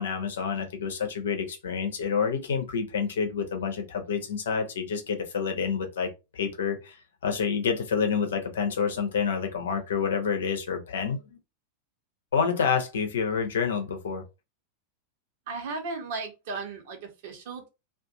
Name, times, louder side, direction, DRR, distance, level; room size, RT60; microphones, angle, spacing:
voice 1, 0.0-11.4 12.3-14.2, left 6 dB, 65° left, 0.8 m, -28 dB
voice 2, 15.5-17.7, right 4 dB, 50° right, 1.2 m, -36 dB
2.5 x 2.5 x 3.7 m
figure-of-eight pair, 90°, 0 cm